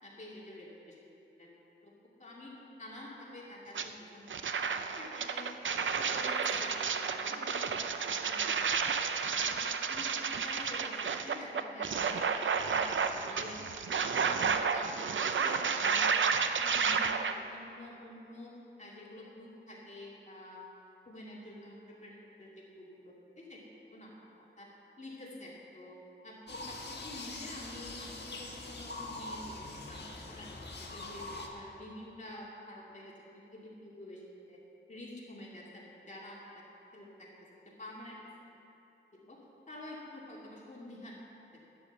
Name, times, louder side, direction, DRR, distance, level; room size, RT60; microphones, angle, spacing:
voice 1, 0.0-1.0 1.4-1.5 1.8-1.9 2.2-2.5 2.8-4.6 5.0-5.5 5.7-8.9 9.4-9.6 9.9-16.3 16.6-18.5 18.8-20.6 21.1-24.1 24.6-24.7 25.0-26.0 26.2-30.5 30.9-34.2 34.5-34.6 34.9-36.6 36.9-37.3 37.8-38.2 39.1-39.4 39.7-41.2 41.5-41.6, left 1 dB, 40° left, -5 dB, 2.6 m, -48 dB
sound 1, 3.7-3.9 4.3-17.3, right 6 dB, 80° right, 0.6 m, -31 dB
sound 2, 26.5-31.5, left 2 dB, 60° left, 1.6 m, -43 dB
11.5 x 9.9 x 7.3 m, 2.9 s
wide cardioid pair, 90°, 19 cm